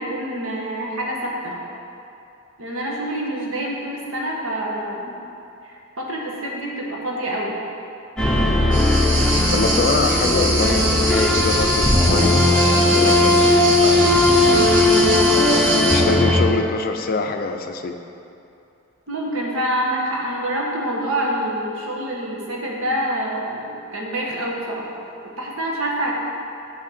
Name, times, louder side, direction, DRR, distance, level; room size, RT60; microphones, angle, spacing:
voice 1, 0.0-1.6 2.6-5.2 6.0-7.6 19.1-24.9 25.2-26.1, right 1 dB, 85° right, -2 dB, 1.2 m, -26 dB
sound 1, 8.2-16.4, left 2 dB, 5° left, 0.7 m, -17 dB
sound 2, 8.7-16.0, right 1 dB, 60° right, 1.3 m, -23 dB
voice 2, 9.5-14.6 15.5-18.0, left 3 dB, 45° left, 6 dB, 0.4 m, -25 dB
6.3 x 6.2 x 4.3 m, 2.7 s
head